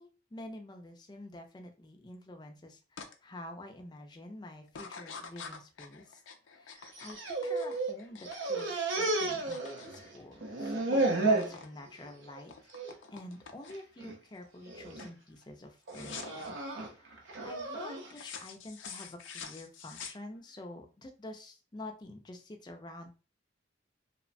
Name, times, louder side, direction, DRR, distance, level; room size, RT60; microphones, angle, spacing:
voice 1, 0.0-6.2 6.5-12.5 13.1-16.5 16.9-23.1, left 1 dB, 20° left, 4 dB, 0.4 m, -48 dB
sound 1, 3.0-3.1 3.6-4.0 4.7-10.7 11.0-11.7 12.0-14.0 14.4-14.7 15.0-15.2 15.9-16.5 18.1-20.6, left 6 dB, 85° left, 0.4 m, -47 dB
Whining Dog, 6.9-8.0 8.2-10.1 10.4-11.6 12.0-12.4 12.7-12.9 13.7-14.1 14.7-15.1 15.9-18.1, right 2 dB, 80° right, 0.6 m, -32 dB
3.0 x 2.1 x 2.5 m, 0.33 s
head